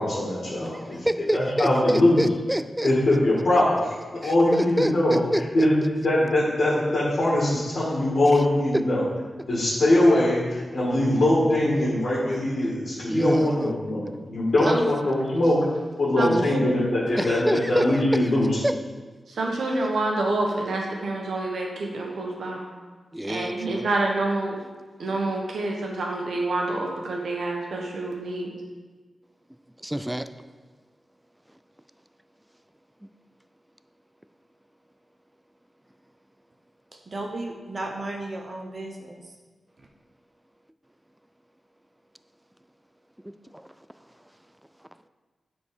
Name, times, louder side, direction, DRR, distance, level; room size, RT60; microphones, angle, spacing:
voice 1, 0.0-1.0 1.3-2.2 2.8-5.2 5.5-9.0 9.5-15.6 16.0-18.5, left 1 dB, 60° left, -7 dB, 2.2 m, -22 dB
voice 2, 1.1-2.9 4.2-5.4 13.1-13.8 14.6-14.8 16.2-16.5 17.2-17.8 18.6-18.7 23.1-23.9 29.8-30.3 43.2-43.6, equal, 5° right, 10 dB, 0.3 m, -26 dB
voice 3, 16.2-16.8 19.3-22.7 23.3-24.6 25.0-28.5, right 2 dB, 85° right, 0 dB, 1.4 m, -27 dB
voice 4, 37.1-39.2, right 2 dB, 40° right, 1 dB, 0.7 m, -34 dB
9.9 x 4.3 x 4.9 m, 1.3 s
wide cardioid pair, 135°, 0 cm